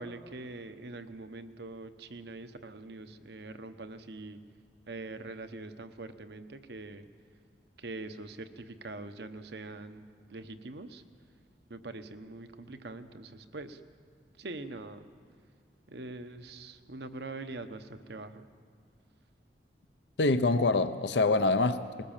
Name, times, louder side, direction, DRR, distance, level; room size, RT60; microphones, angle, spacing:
voice 1, 0.0-4.4 4.9-7.0 7.8-10.0 10.3-11.0 11.7-13.8 14.4-15.0 15.9-18.4, right 2 dB, 65° right, 9 dB, 1.0 m, -43 dB
voice 2, 20.2-22.0, left 3 dB, 70° left, 10 dB, 0.7 m, -25 dB
21.0 x 19.0 x 7.3 m, 2.1 s
head